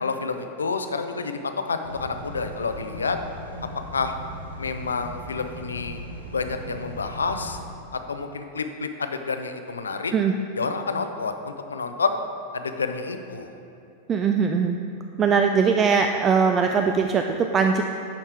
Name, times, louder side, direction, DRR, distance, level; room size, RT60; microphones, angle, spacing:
voice 1, 0.0-3.2 3.9-4.1 4.6-6.0 6.3-7.6 7.9-10.1 10.6-12.2 12.5-13.6, left 4 dB, 75° left, 7 dB, 0.5 m, -29 dB
sound 1, 1.8-7.7, equal, 85° right, 1.0 m, -39 dB
voice 2, 14.1-14.8 15.2-17.8, right 6 dB, 25° right, 5 dB, 0.3 m, -21 dB
10.5 x 4.3 x 4.6 m, 2.7 s
figure-of-eight pair, 90°, 0 cm